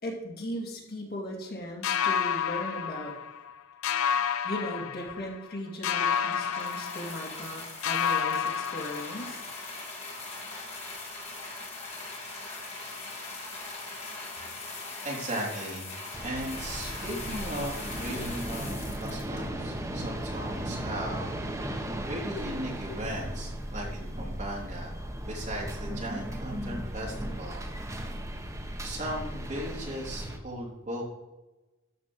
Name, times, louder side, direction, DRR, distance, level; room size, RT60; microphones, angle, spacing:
voice 1, 0.0-3.1 4.4-9.4, equal, 50° left, -1 dB, 2.7 m, -37 dB
sound 1, 1.8-3.5 3.8-5.5 5.8-7.6 7.8-9.5, left 8 dB, 75° left, 0.6 m, -30 dB
sound 2, 6.1-19.8 20.6-20.7, left 3 dB, 30° left, 2.9 m, -41 dB
voice 2, 15.0-15.9 16.2-25.0 25.2-27.6 27.9-28.2 28.8-31.0, right 1 dB, 35° right, -4 dB, 3.5 m, -37 dB
sound 3, 16.1-30.4, right 1 dB, 15° right, 1.2 m, -36 dB
13.5 x 5.2 x 6.4 m, 1.0 s
head